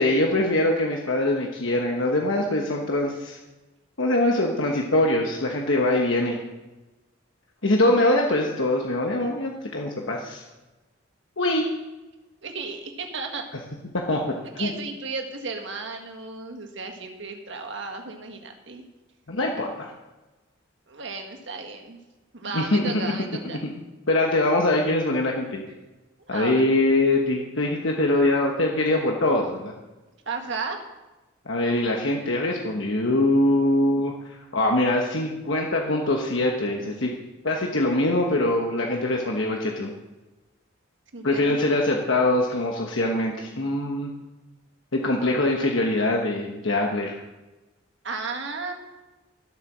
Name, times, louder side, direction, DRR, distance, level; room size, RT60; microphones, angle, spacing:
voice 1, 0.0-3.4 4.0-6.4 7.6-10.4 11.4-11.7 14.1-14.2 14.5-14.7 19.3-19.9 22.5-23.0 24.1-25.6 26.3-29.7 31.5-37.1 37.4-39.9 41.2-44.1 44.9-47.2, left 1 dB, 70° left, 1 dB, 1.2 m, -23 dB
voice 2, 12.4-13.5 14.6-18.8 20.9-22.0 22.3-23.7 26.3-26.7 30.3-30.8 41.1-42.0 48.0-48.7, right 4 dB, 60° right, 4 dB, 1.7 m, -34 dB
13.5 x 8.3 x 6.2 m, 1.1 s
head